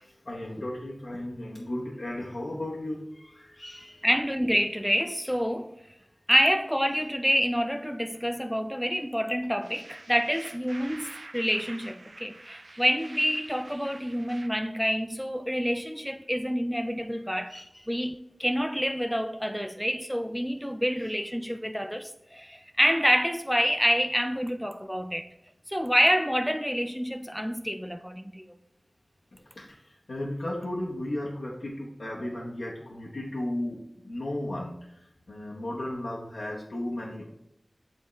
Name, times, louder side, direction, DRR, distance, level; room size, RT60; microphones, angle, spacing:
voice 1, 0.2-4.1 17.3-17.9 20.9-21.1 29.3-37.3, left 1 dB, 90° left, 0.9 m, -35 dB
voice 2, 4.0-5.7 6.3-17.5 17.9-25.3 25.7-28.5, equal, ahead, 0.4 m, -27 dB
sound 1, 9.6-14.5, right 2 dB, 65° right, 0.5 m, -47 dB
8.8 x 3.6 x 3.1 m
wide cardioid pair, 45°, 0 cm